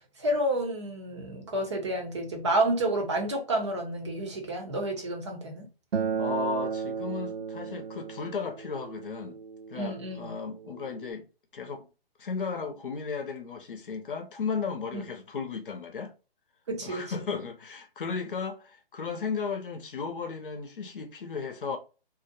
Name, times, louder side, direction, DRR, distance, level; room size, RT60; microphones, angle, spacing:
voice 1, 0.2-5.7 9.8-10.3 14.9-15.0 16.7-17.0, right 1 dB, 30° right, 0.6 m, -30 dB
Acoustic guitar, 5.9-11.1, right 6 dB, 80° right, 0.6 m, -34 dB
voice 2, 6.2-9.4 9.7-11.2 11.5-11.9 12.2-16.1 16.8-21.8, left 5 dB, 60° left, 0.7 m, -35 dB
2.5 x 2.1 x 2.5 m
figure-of-eight pair, 150°, 31 cm